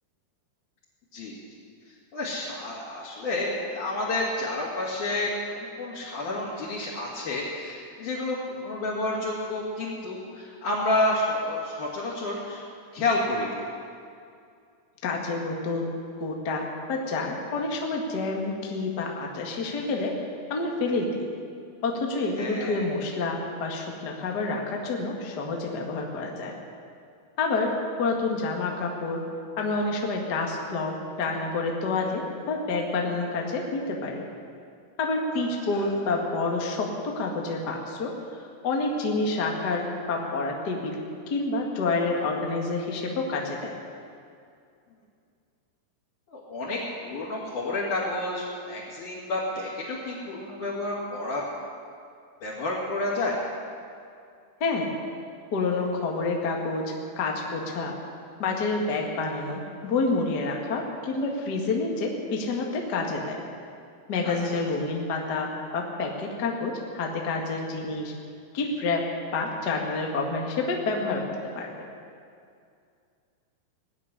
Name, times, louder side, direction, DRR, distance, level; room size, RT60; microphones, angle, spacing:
voice 1, 2.1-12.6 12.9-13.6 22.4-22.8 35.3-35.4 35.7-36.0 46.3-51.4 52.4-53.4 64.2-64.3, left 2 dB, 50° left, -8 dB, 3.3 m, -30 dB
voice 2, 15.0-15.9 16.2-20.2 20.5-21.3 21.8-26.5 27.4-27.7 28.0-29.2 29.6-34.2 35.0-43.8 54.6-54.9 55.5-58.0 58.4-63.4 64.1-68.1 68.5-69.1 69.3-71.7, left 3 dB, 90° left, 0 dB, 0.9 m, -28 dB
18.0 x 7.3 x 10.0 m, 2.4 s
omnidirectional pair, 5.0 m